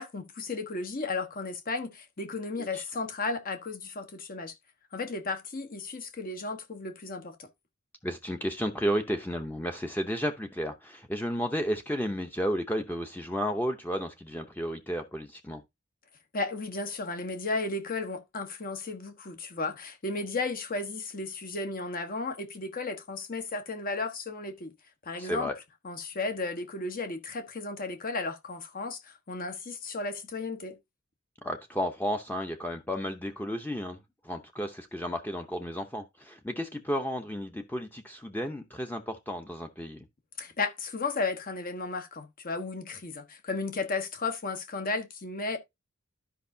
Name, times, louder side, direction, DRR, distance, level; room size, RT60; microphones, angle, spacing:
voice 1, 0.0-4.5 4.9-7.5 16.3-24.7 25.0-25.5 25.8-30.8 40.4-45.6, left 3 dB, 45° left, 1.3 m, -34 dB
voice 2, 8.0-15.6 25.2-25.6 31.4-34.0 34.2-40.0, equal, 10° left, 0.8 m, -32 dB
12.5 x 5.3 x 2.7 m
head